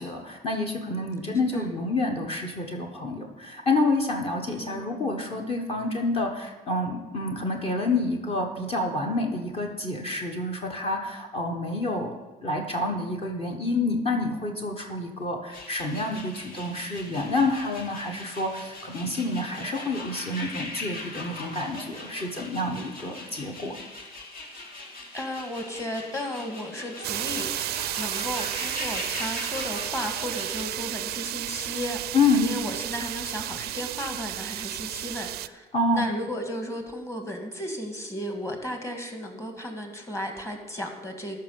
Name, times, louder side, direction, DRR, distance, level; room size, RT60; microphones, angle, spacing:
voice 1, 0.0-12.1 12.4-23.8 32.1-32.5 35.7-36.1, left 2 dB, 35° left, 2 dB, 1.3 m, -28 dB
voice 2, 4.5-5.0 25.1-27.5 28.0-32.0 32.3-35.7 35.9-41.4, equal, 15° left, 3 dB, 1.9 m, -34 dB
sound 1, 15.5-30.7, left 2 dB, 60° left, 2.5 m, -40 dB
sound 2, 27.0-35.5, right 15 dB, 70° right, 0.4 m, -32 dB
13.5 x 5.8 x 5.5 m, 1.2 s
cardioid pair, 110°, 17 cm